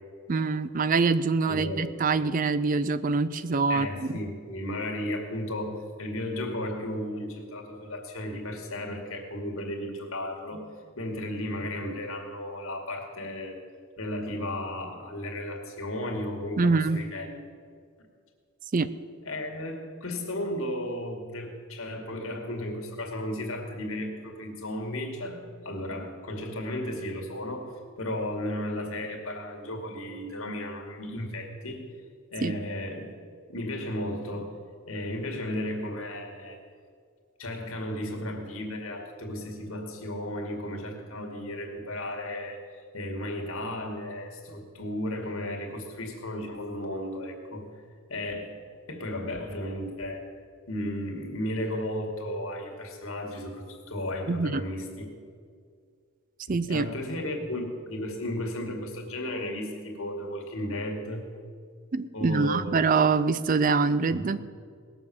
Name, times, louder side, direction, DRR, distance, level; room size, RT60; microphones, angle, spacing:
voice 1, 0.3-3.9 16.6-17.0 18.7-18.9 32.4-32.6 54.3-54.6 56.5-56.9 61.9-64.4, right 4 dB, 40° right, 14 dB, 0.4 m, -24 dB
voice 2, 1.5-1.9 3.7-10.7 11.0-13.6 14.0-17.4 19.2-27.7 28.0-31.9 32.3-33.2 33.5-34.5 34.9-36.6 37.4-47.7 48.1-48.6 48.9-50.3 50.7-55.1 56.5-61.3 62.1-62.9 64.1-64.3, left 1 dB, 75° left, 2 dB, 2.3 m, -34 dB
19.0 x 7.1 x 7.2 m, 2.1 s
head